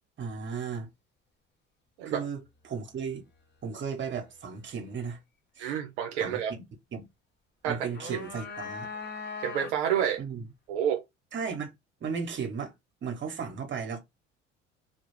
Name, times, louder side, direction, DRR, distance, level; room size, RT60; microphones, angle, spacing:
voice 1, 0.2-0.9 2.0-3.2 3.6-5.2 5.6-5.7 6.2-6.6 6.9-7.1 7.6-8.9 10.2-10.4 11.3-11.7 12.0-12.7 13.0-14.0, right 6 dB, 30° right, 0.9 m, -35 dB
voice 2, 5.6-6.5 7.6-8.2 9.4-10.2 10.7-11.0, right 9 dB, 70° right, 0.5 m, -29 dB
sound 1, 7.7-10.0, left 4 dB, 30° left, 0.8 m, -40 dB
2.3 x 2.0 x 3.0 m
figure-of-eight pair, 55°, 35 cm